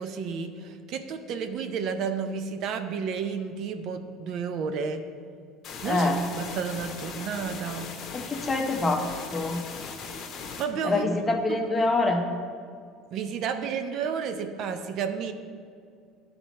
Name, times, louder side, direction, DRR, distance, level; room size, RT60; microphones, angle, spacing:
voice 1, 0.0-5.1 5.8-7.9 10.6-11.1 11.5-11.6 13.1-15.3, right 6 dB, 55° right, 8 dB, 0.5 m, -31 dB
sound 1, 5.6-10.6, left 5 dB, 50° left, 0.9 m, -39 dB
voice 2, 5.8-6.2 8.1-9.1 9.3-9.6 10.8-12.2, left 2 dB, 20° left, 4 dB, 0.8 m, -25 dB
10.5 x 4.1 x 4.2 m, 2.3 s
supercardioid pair, 110°, 0 cm